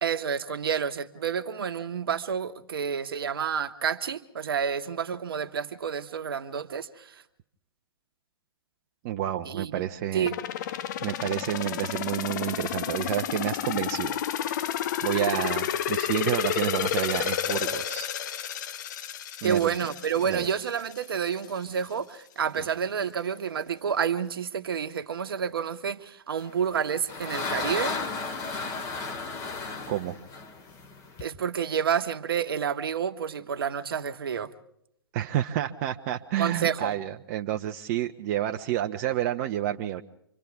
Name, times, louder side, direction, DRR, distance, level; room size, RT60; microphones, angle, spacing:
voice 1, 0.0-7.2 9.4-9.8 10.1-10.4 19.4-27.9 31.2-34.5 36.4-36.9, right 7 dB, 65° right, 10 dB, 1.2 m, -29 dB
voice 2, 9.0-10.3 11.0-18.4 19.4-19.7 20.2-20.5 22.6-22.7 29.9-30.2 35.1-40.0, right 12 dB, 35° right, 5 dB, 0.8 m, -30 dB
sound 1, 10.2-21.0 21.4-21.5, left 10 dB, 50° left, 0.8 m, -31 dB
sound 2, 26.6-31.3, left 4 dB, 25° left, 2.4 m, -34 dB
29.5 x 25.0 x 3.5 m, 0.75 s
hypercardioid pair, 125°, 13 cm